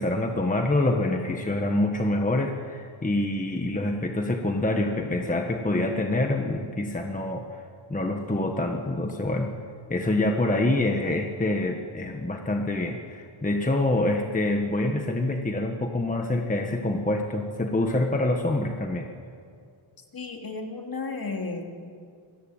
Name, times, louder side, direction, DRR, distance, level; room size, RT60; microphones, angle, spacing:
voice 1, 0.0-9.5 9.9-19.1, left 2 dB, 15° left, 3 dB, 1.4 m, -26 dB
voice 2, 20.1-21.8, left 3 dB, 45° left, 3 dB, 2.9 m, -33 dB
26.5 x 22.5 x 8.9 m, 2.3 s
wide cardioid pair, 175°, 49 cm